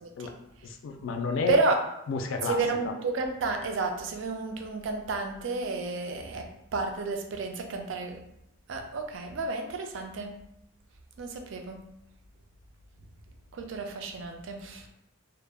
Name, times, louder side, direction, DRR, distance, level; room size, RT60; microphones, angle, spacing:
voice 1, 0.6-1.6 2.1-2.6 2.8-2.9, left 5 dB, 75° left, 5 dB, 0.3 m, -30 dB
voice 2, 1.5-1.8 2.4-8.2 8.7-10.3 11.2-11.8 13.5-14.9, right 3 dB, 70° right, 4 dB, 0.4 m, -31 dB
2.2 x 2.0 x 3.2 m, 0.80 s
head